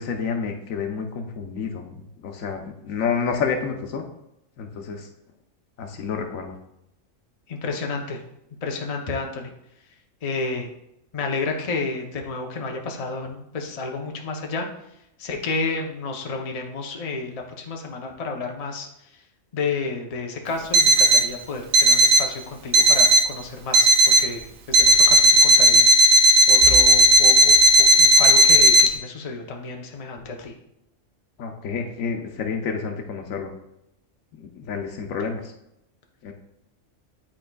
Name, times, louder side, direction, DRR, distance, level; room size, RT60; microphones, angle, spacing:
voice 1, 0.0-4.0 4.6-5.1 5.8-6.5 31.4-33.5 34.4-35.4 36.2-36.3, left 5 dB, 90° left, 4 dB, 1.1 m, -29 dB
voice 2, 7.5-8.2 8.6-9.5 10.2-10.7 11.1-14.7 15.2-18.9 19.5-25.8 26.5-30.5, left 3 dB, 35° left, 2 dB, 0.6 m, -31 dB
Alarm, 20.7-21.3 21.7-22.3 22.7-23.3 23.7-24.3 24.7-28.9, right 1 dB, 85° right, 1.0 m, -14 dB
10.0 x 4.2 x 2.3 m, 0.83 s
omnidirectional pair, 1.4 m